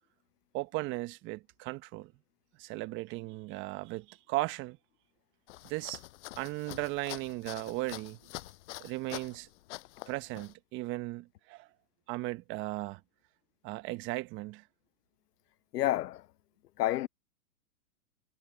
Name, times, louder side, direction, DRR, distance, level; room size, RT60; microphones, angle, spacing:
voice 1, 0.5-2.1 2.6-4.8 5.6-6.0 6.4-8.2 8.8-9.5 10.1-11.7 12.1-13.0 13.6-14.6, right 20 dB, 25° right, 1.2 m, -36 dB
sound 1, 5.5-9.4 9.7-10.5, left 18 dB, 50° left, 7.5 m, -46 dB
voice 2, 15.7-16.3 16.8-17.1, left 14 dB, 75° left, 0.6 m, -29 dB
hypercardioid pair, 140°, 47 cm